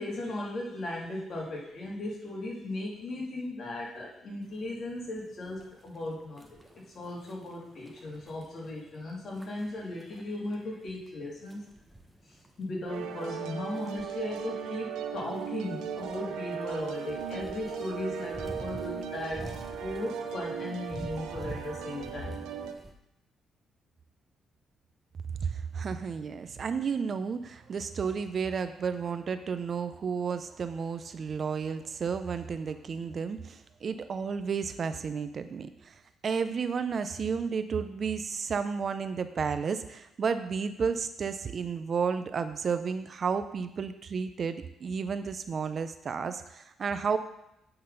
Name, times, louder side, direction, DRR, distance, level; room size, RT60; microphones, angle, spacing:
voice 1, 0.0-6.6 6.9-11.6 12.6-19.5 19.8-22.5, left 2 dB, 50° left, -3 dB, 2.5 m, -37 dB
sound 1, 4.4-22.9, right 1 dB, 10° right, 1.0 m, -49 dB
sound 2, 12.9-22.7, right 7 dB, 90° right, 0.6 m, -37 dB
voice 2, 25.4-35.9 36.2-47.2, right 6 dB, 50° right, 10 dB, 0.5 m, -32 dB
8.7 x 4.0 x 5.4 m, 0.82 s
cardioid pair, 90°, 0 cm